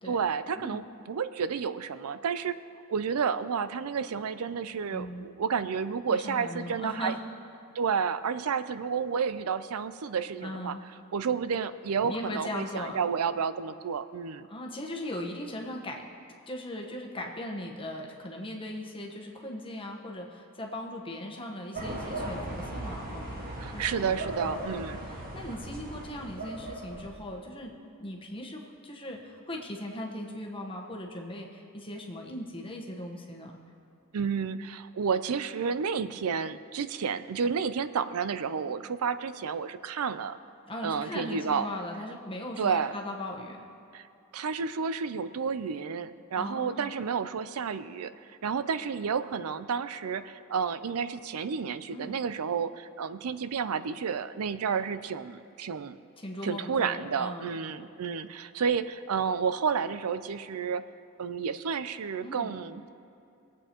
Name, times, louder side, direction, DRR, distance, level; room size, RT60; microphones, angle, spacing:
voice 1, 0.1-2.6 2.9-7.1 7.7-10.8 11.1-14.5 23.6-25.0 34.1-40.4 40.8-41.7 42.6-42.9 43.9-44.1 44.3-48.1 48.4-56.0 56.4-60.8 61.2-62.9, right 6 dB, 80° right, 13 dB, 0.5 m, -31 dB
voice 2, 4.9-5.3 6.1-7.2 10.4-10.8 12.0-13.0 14.5-16.0 16.5-27.7 28.0-33.5 40.7-43.7 46.4-46.9 51.9-52.2 56.2-57.5 62.2-62.5, left 1 dB, 25° left, 0 dB, 1.2 m, -39 dB
sound 1, 21.7-27.3, right 1 dB, 40° right, 1.6 m, -37 dB
21.0 x 8.5 x 3.0 m, 2.7 s
head